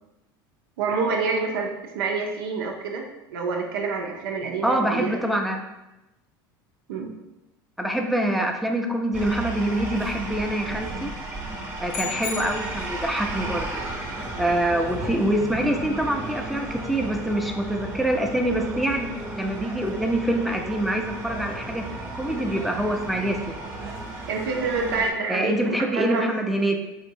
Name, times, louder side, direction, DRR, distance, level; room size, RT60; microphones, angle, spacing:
voice 1, 0.8-5.2 6.9-7.2 24.3-26.5, right 4 dB, 80° right, 1 dB, 0.5 m, -27 dB
voice 2, 4.6-5.6 7.8-11.1 11.8-13.8 14.4-19.1 19.3-21.8 22.1-23.6 25.3-26.8, right 1 dB, ahead, 2 dB, 0.5 m, -25 dB
sound 1, 9.1-25.1, right 2 dB, 20° right, 0.9 m, -34 dB
sound 2, 11.9-13.2, left 9 dB, 75° left, 0.5 m, -35 dB
4.4 x 2.9 x 2.7 m, 1.0 s
hypercardioid pair, 85°, 12 cm